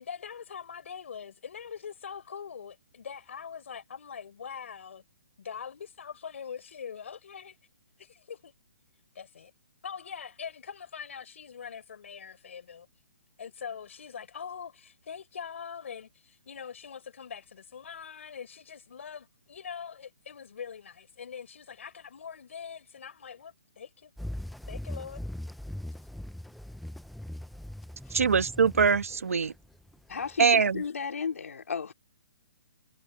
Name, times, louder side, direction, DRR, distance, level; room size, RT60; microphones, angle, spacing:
voice 1, 0.0-5.0 5.4-7.6 8.0-8.5 9.1-9.5 9.8-12.9 13.4-24.1 24.7-25.2, left 7 dB, 65° left, 4.1 m, -43 dB
sound 1, 24.2-30.9, left 1 dB, ahead, 0.4 m, -40 dB
voice 2, 28.1-29.5 30.4-30.8, right 6 dB, 85° right, 1.4 m, -23 dB
voice 3, 30.1-31.9, left 6 dB, 85° left, 3.5 m, -34 dB
hypercardioid pair, 165°, 7 cm